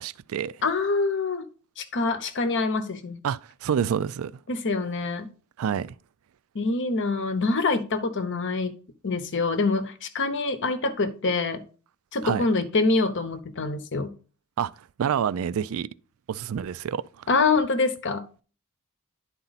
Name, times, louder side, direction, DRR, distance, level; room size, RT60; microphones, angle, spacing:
voice 1, 0.0-0.6 3.2-4.3 5.6-6.0 12.2-12.4 14.6-14.7 15.0-15.9 16.3-17.3, right 8 dB, 65° right, 0.3 m, -27 dB
voice 2, 0.6-1.5 1.8-3.2 4.5-5.3 6.5-8.8 9.0-11.6 12.1-14.1 17.3-18.4, left 3 dB, 55° left, 0.9 m, -25 dB
10.5 x 4.3 x 4.0 m
head